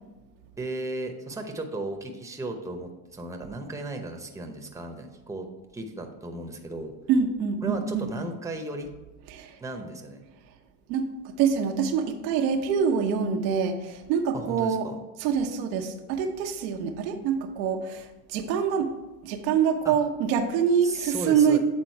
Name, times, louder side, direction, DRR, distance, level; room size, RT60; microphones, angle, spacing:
voice 1, 0.6-5.5 5.7-6.9 7.6-8.9 9.6-10.2 14.3-15.0 19.8-20.0 20.8-21.6, right 2 dB, 5° right, 4 dB, 0.8 m, -35 dB
voice 2, 7.1-8.1 9.3-9.6 10.9-14.9 15.2-18.9 19.2-21.6, right 7 dB, 85° right, 3 dB, 0.9 m, -25 dB
8.3 x 3.8 x 4.5 m, 1.1 s
supercardioid pair, 95°, 50 cm